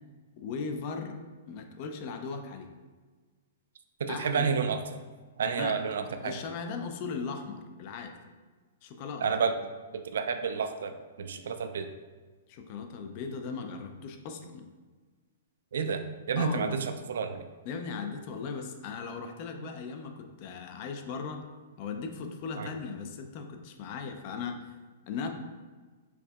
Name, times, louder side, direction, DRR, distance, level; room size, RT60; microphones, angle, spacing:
voice 1, 0.4-2.7 4.1-4.5 5.5-5.8 6.2-8.1 8.8-9.2 12.5-14.7 16.4-16.8 17.7-21.4 21.8-24.6 25.1-25.3, left 5 dB, 40° left, 5 dB, 0.4 m, -38 dB
voice 2, 4.0-4.8 5.4-6.3 9.2-9.5 9.9-11.9 15.7-16.0 16.3-17.4 22.6-22.7, right 6 dB, 80° right, 8 dB, 0.3 m, -30 dB
4.6 x 2.6 x 2.3 m, 1.4 s
hypercardioid pair, 155°, 0 cm